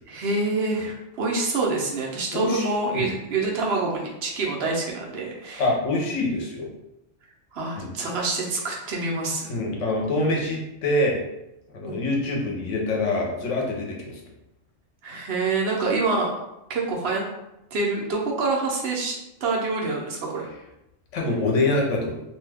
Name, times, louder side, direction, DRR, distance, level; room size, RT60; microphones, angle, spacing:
voice 1, 0.0-5.7 7.5-9.6 11.8-12.0 15.0-16.3 16.7-17.2 17.7-19.2 19.4-20.5, right 3 dB, 65° right, -2 dB, 0.8 m, -26 dB
voice 2, 2.3-2.7 2.9-3.1 5.6-6.7 7.8-7.9 9.5-11.2 11.7-14.2 21.1-22.2, left 2 dB, 90° left, -1 dB, 1.1 m, -25 dB
2.6 x 2.2 x 3.3 m, 0.87 s
omnidirectional pair, 1.2 m